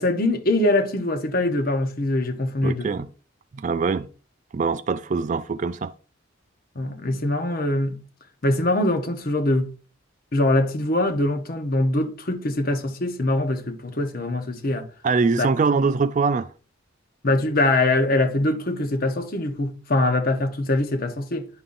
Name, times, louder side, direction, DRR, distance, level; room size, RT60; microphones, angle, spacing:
voice 1, 0.0-2.9 6.7-8.0 8.4-9.7 10.3-14.9 15.4-15.5 17.2-21.5, left 2 dB, 45° left, 0.9 m, -23 dB
voice 2, 2.6-3.1 3.5-4.1 4.5-5.9 15.0-16.5, right 4 dB, 40° right, 0.3 m, -23 dB
9.9 x 5.4 x 2.6 m
head